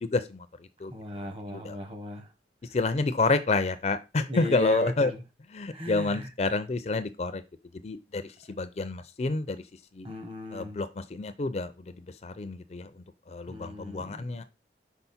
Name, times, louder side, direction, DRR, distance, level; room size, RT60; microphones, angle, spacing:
voice 1, 0.0-0.9 1.5-1.8 2.7-5.1 5.5-7.4 7.7-9.6 9.9-10.1 10.5-14.4, left 3 dB, 35° left, 0.4 m, -29 dB
voice 2, 0.9-2.3 2.7-2.8 4.3-5.2 5.7-6.3 10.0-10.8 13.5-14.2, equal, 30° right, 1.0 m, -37 dB
5.6 x 4.2 x 4.2 m
head